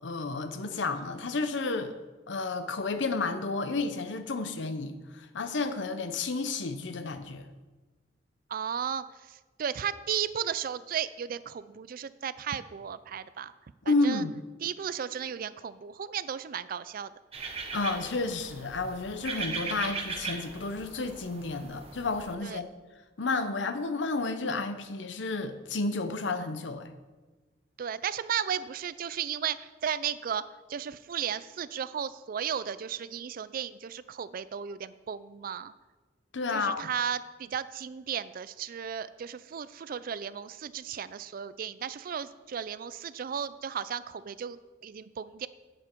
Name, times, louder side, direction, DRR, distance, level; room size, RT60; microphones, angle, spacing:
voice 1, 0.0-1.9 2.3-7.5 13.8-14.4 17.7-22.7 23.2-26.9 36.3-36.9, left 3 dB, 75° left, 9 dB, 0.8 m, -31 dB
voice 2, 8.5-13.5 13.9-14.2 14.6-17.1 22.4-22.6 27.8-30.4 30.7-35.7 36.5-45.5, right 8 dB, 50° right, 15 dB, 0.4 m, -35 dB
sound 1, 17.3-22.3, right 4 dB, 35° right, 0.9 m, -39 dB
8.9 x 7.7 x 4.5 m, 1.3 s
head